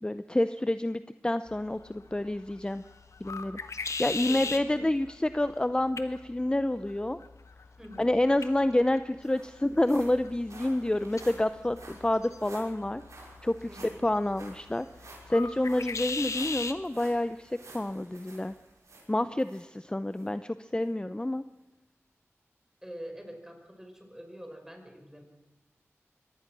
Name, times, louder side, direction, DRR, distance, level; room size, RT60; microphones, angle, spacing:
voice 1, 0.0-2.8 3.2-3.6 4.0-7.2 8.0-13.0 13.4-13.7 14.0-14.9 15.3-18.5 19.1-21.4, left 1 dB, 20° left, 12 dB, 0.7 m, -28 dB
sound 1, 1.5-16.8, left 4 dB, 90° left, 1.3 m, -41 dB
voice 2, 4.3-4.9 7.8-8.1 13.6-14.0 22.8-25.2, equal, 10° right, 4 dB, 5.4 m, -45 dB
sound 2, 8.8-19.6 20.1-20.3 20.8-20.9, right 2 dB, 90° right, 6.2 m, -52 dB
23.5 x 18.5 x 6.2 m, 1.1 s
wide cardioid pair, 60°, 5 cm